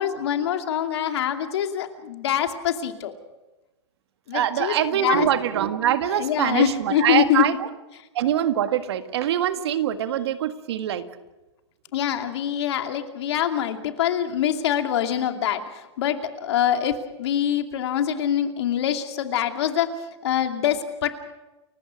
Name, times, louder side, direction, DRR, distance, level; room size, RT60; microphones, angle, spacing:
voice 1, 0.0-3.1 4.3-5.3 6.1-7.5 11.9-19.9 20.2-21.1, left 10 dB, 70° left, 5 dB, 2.5 m, -24 dB
voice 2, 4.3-7.7 8.1-11.1, right 11 dB, 65° right, 9 dB, 1.8 m, -24 dB
30.0 x 15.5 x 6.5 m, 1.0 s
hypercardioid pair, 130°, 15 cm